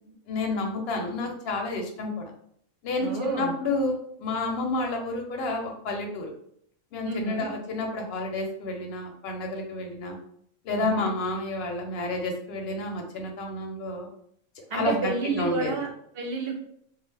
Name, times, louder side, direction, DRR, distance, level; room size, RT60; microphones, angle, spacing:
voice 1, 0.3-2.2 2.8-6.3 6.9-10.2 10.6-14.1 14.7-15.7, left 2 dB, 60° left, 2 dB, 0.7 m, -30 dB
voice 2, 3.0-3.5 7.0-7.5 10.7-11.1 14.7-16.6, right 4 dB, 60° right, 1 dB, 0.7 m, -30 dB
2.4 x 2.3 x 3.2 m, 0.68 s
omnidirectional pair, 1.4 m